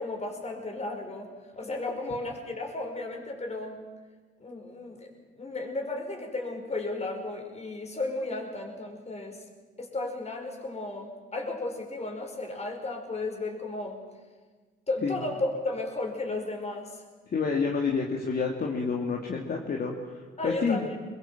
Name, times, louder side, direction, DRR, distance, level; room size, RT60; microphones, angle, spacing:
voice 1, 0.0-3.8 4.4-9.4 9.8-14.0 14.9-17.0 20.4-21.0, left 2 dB, 35° left, 3 dB, 5.4 m, -34 dB
voice 2, 17.3-20.8, left 5 dB, 50° left, 0 dB, 2.7 m, -29 dB
23.0 x 22.0 x 7.5 m, 1.4 s
cardioid pair, 90°, 20 cm